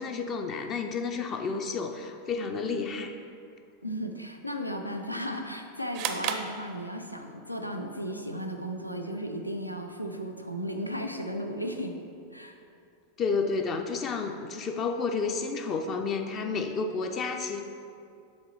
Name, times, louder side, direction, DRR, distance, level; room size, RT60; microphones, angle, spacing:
voice 1, 0.0-3.2 13.2-17.6, left 4 dB, 30° left, 5 dB, 0.4 m, -31 dB
voice 2, 3.8-12.0 12.3-12.6, equal, 90° left, 4 dB, 0.4 m, -35 dB
sound 1, 5.9-7.4, right 8 dB, 45° right, 0.4 m, -34 dB
7.3 x 3.7 x 4.6 m, 2.5 s
figure-of-eight pair, 90°, 0 cm